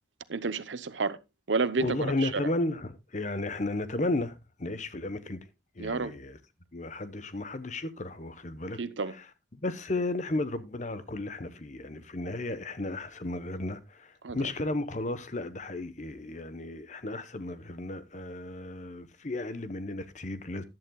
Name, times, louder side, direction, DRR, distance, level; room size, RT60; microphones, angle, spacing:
voice 1, 0.3-1.2 1.5-2.4 5.8-6.1 8.8-9.1 14.2-14.4, right 4 dB, 85° right, 0.8 m, -30 dB
voice 2, 1.8-5.5 5.7-6.4 6.7-8.8 9.1-9.3 9.5-20.6, left 2 dB, 40° left, 1.0 m, -34 dB
15.0 x 11.0 x 2.3 m
head